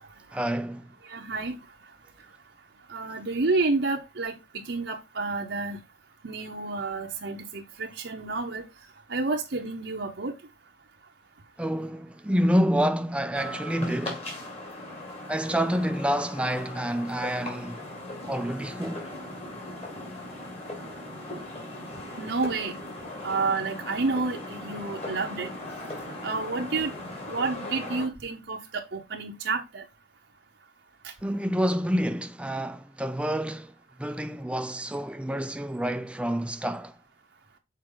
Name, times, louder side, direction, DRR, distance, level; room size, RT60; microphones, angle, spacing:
voice 1, 0.3-0.9 11.6-14.3 15.3-17.8 18.3-19.0 31.2-33.7 34.0-37.0, equal, 5° right, 0.4 m, -28 dB
voice 2, 1.1-1.5 2.9-4.3 4.7-5.8 6.2-8.7 9.1-10.3 22.2-22.7 23.2-25.5 26.2-26.9 27.3-29.8, right 3 dB, 70° right, 0.9 m, -29 dB
sound 1, 13.3-28.1, left 1 dB, 35° left, 2.2 m, -38 dB
6.6 x 4.5 x 3.8 m
head